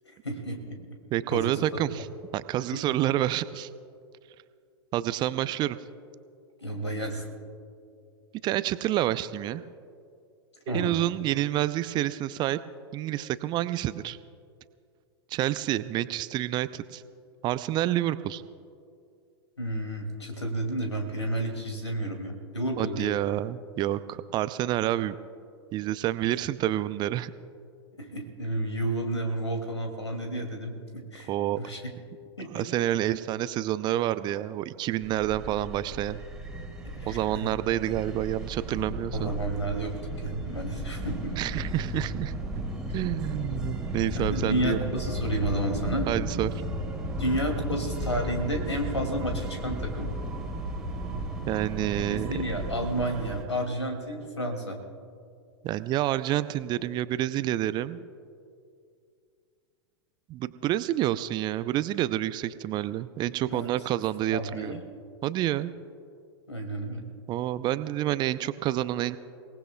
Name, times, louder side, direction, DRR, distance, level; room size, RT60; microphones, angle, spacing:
voice 1, 0.2-0.8 1.3-1.8 2.7-2.8 6.6-7.3 10.7-10.9 19.6-23.1 28.0-31.3 31.6-31.8 32.4-32.6 37.0-37.6 39.1-41.4 44.2-46.1 47.2-50.1 52.1-54.8 63.5-63.7 64.3-64.8 66.5-67.0, right 1 dB, 90° left, 3 dB, 2.4 m, -31 dB
voice 2, 1.1-2.1 2.3-3.7 4.9-5.8 8.4-9.6 10.7-12.6 12.9-14.2 15.3-17.0 17.4-18.4 22.8-25.1 25.7-27.3 31.3-31.6 32.5-36.2 37.0-39.3 41.4-42.6 42.9-44.9 46.1-46.5 51.4-52.3 55.6-58.0 60.3-64.8 65.2-65.7 67.3-69.2, right 13 dB, 30° right, 15 dB, 0.5 m, -28 dB
sound 1, 35.0-53.4, right 1 dB, 5° right, 2.2 m, -34 dB
29.5 x 18.5 x 2.3 m, 2.4 s
figure-of-eight pair, 95°, 14 cm